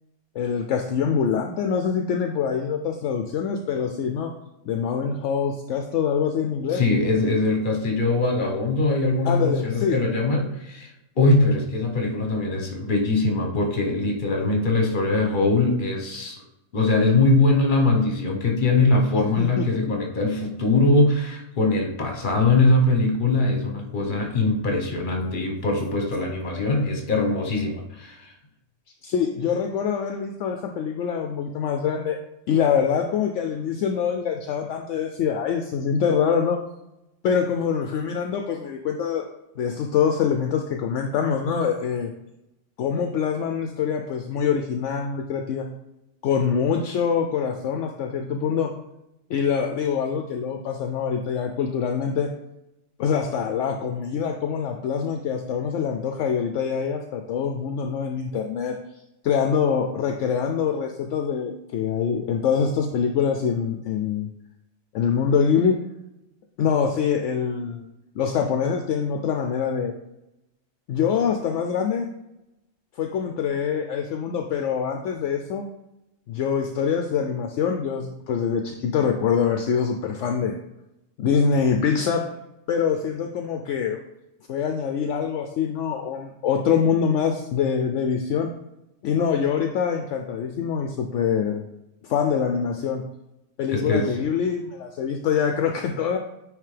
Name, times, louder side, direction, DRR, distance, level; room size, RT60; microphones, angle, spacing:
voice 1, 0.4-4.3 4.7-6.8 9.2-10.0 19.4-19.7 29.0-32.2 32.5-36.6 37.2-39.3 39.6-42.1 42.8-45.6 46.2-48.7 49.3-52.3 53.0-58.8 59.2-64.3 64.9-65.7 66.6-67.9 68.2-69.9 70.9-72.1 73.0-75.6 76.3-80.6 81.2-82.2 82.7-84.0 84.5-88.5 89.0-91.6 92.0-93.0 93.6-96.2, left 7 dB, 70° left, 4 dB, 0.9 m, -24 dB
voice 2, 6.7-16.4 16.7-28.3 93.7-94.2, left 2 dB, 40° left, 1 dB, 1.2 m, -22 dB
9.0 x 3.4 x 3.3 m, 0.89 s
omnidirectional pair, 1.3 m